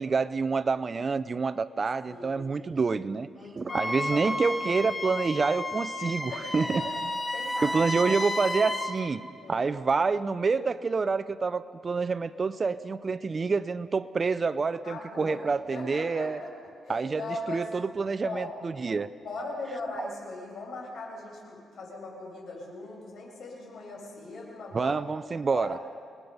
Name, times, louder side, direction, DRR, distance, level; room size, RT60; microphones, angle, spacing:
voice 1, 0.0-3.3 3.6-6.8 7.6-9.2 9.5-16.4 16.9-19.1 20.0-20.1 24.7-25.7, right 4 dB, 35° right, 15 dB, 0.5 m, -27 dB
voice 2, 2.0-2.4 3.4-4.9 6.3-8.7 9.4-9.7 14.8-15.4 15.7-16.5 16.8-17.7 18.2-18.5 19.2-24.9 25.5-25.8, left 2 dB, 60° left, -1 dB, 7.5 m, -40 dB
Wind instrument woodwind instrument, 3.7-9.0, left 1 dB, 15° left, 1.5 m, -32 dB
29.0 x 20.0 x 5.5 m, 2.2 s
cardioid pair, 115°, 0 cm